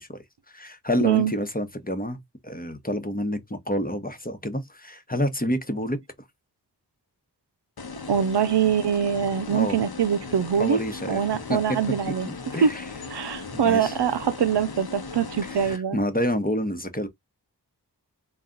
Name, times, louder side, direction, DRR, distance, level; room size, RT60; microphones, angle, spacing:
voice 1, 0.0-6.0 9.5-9.8 10.6-11.6 12.1-12.8 13.5-14.0 15.4-17.1, left 1 dB, 20° left, 1.0 m, -29 dB
voice 2, 1.0-1.4 8.1-12.3 12.6-12.8 13.1-16.0, right 8 dB, 75° right, 0.5 m, -24 dB
sound 1, 7.8-15.8, left 4 dB, 65° left, 0.8 m, -38 dB
4.1 x 2.3 x 3.8 m
wide cardioid pair, 45°, 41 cm